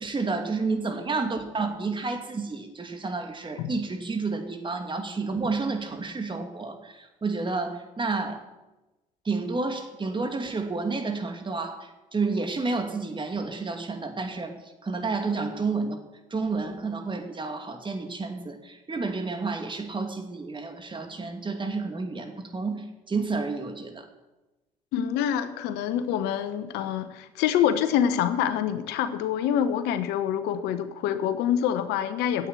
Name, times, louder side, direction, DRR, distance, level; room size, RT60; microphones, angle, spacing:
voice 1, 0.0-8.4 9.2-14.5 14.8-16.0 16.3-24.1, right 3 dB, 30° right, 5 dB, 2.5 m, -30 dB
voice 2, 24.9-32.5, left 9 dB, 75° left, 11 dB, 1.0 m, -26 dB
9.6 x 8.3 x 9.0 m, 1.1 s
hypercardioid pair, 65°, 17 cm